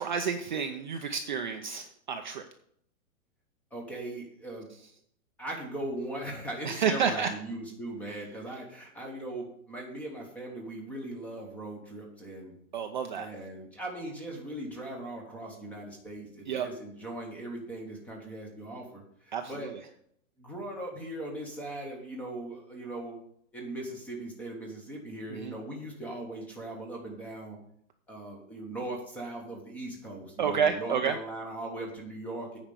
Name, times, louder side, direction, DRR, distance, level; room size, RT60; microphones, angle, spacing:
voice 1, 0.0-2.4 6.6-7.3 12.7-13.3 16.5-16.7 19.3-19.8 25.3-25.5 30.4-31.1, right 7 dB, 35° right, 5 dB, 0.5 m, -30 dB
voice 2, 3.7-4.7 5.4-12.5 13.2-19.7 20.4-23.2 23.5-27.6 28.1-32.6, right 1 dB, 5° left, 0 dB, 0.9 m, -39 dB
8.8 x 5.1 x 6.7 m, 0.68 s
hypercardioid pair, 165°, 41 cm